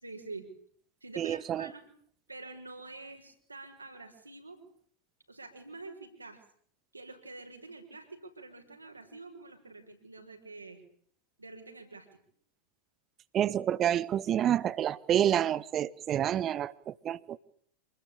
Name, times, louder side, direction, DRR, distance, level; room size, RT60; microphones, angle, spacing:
voice 1, 0.0-0.5 1.0-1.8 2.3-4.6 5.3-6.4 6.9-10.8 11.4-12.2, right 3 dB, 80° right, 4 dB, 6.1 m, -47 dB
voice 2, 1.2-1.7 13.3-17.4, right 10 dB, 30° right, 19 dB, 1.3 m, -28 dB
28.0 x 21.0 x 8.8 m, 0.62 s
figure-of-eight pair, 90°, 0 cm